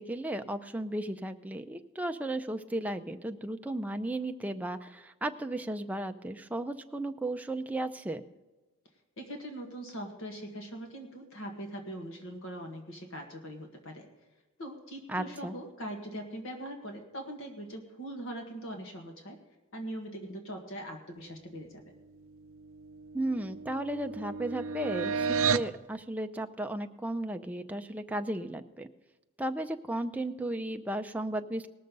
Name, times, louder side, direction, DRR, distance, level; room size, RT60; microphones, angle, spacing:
voice 1, 0.0-8.2 15.1-15.5 23.1-28.9 29.4-31.7, right 1 dB, 5° right, 6 dB, 0.5 m, -35 dB
voice 2, 9.2-14.1 14.6-19.4 19.7-21.8, right 1 dB, 60° left, 3 dB, 1.7 m, -41 dB
sound 1, 22.6-25.8, right 6 dB, 65° right, 0.5 m, -32 dB
19.0 x 6.6 x 5.3 m, 1.2 s
head